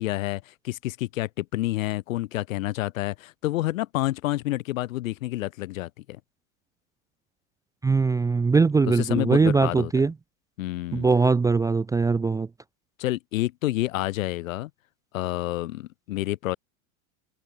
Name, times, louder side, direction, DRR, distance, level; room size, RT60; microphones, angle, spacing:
voice 1, 0.0-6.2 8.9-9.9 10.6-11.1 13.0-14.7 15.1-16.6, left 16 dB, 70° left, 3.2 m, -29 dB
voice 2, 7.8-10.1 10.9-12.5, right 4 dB, 10° right, 0.5 m, -21 dB
hypercardioid pair, 110°, 41 cm